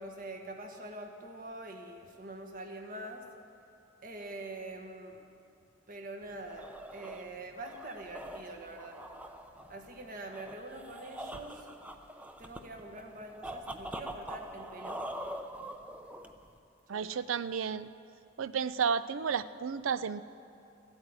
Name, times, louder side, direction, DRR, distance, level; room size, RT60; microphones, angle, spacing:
voice 1, 0.0-3.3 4.0-5.2 5.9-9.0 9.7-11.7 12.4-15.1 16.9-17.2, right 2 dB, 45° right, 3 dB, 1.4 m, -44 dB
sound 1, 6.2-16.6, right 1 dB, 5° right, 0.6 m, -44 dB
voice 2, 16.9-17.9 18.4-20.2, right 6 dB, 90° right, 15 dB, 0.5 m, -32 dB
13.5 x 8.8 x 9.6 m, 2.6 s
head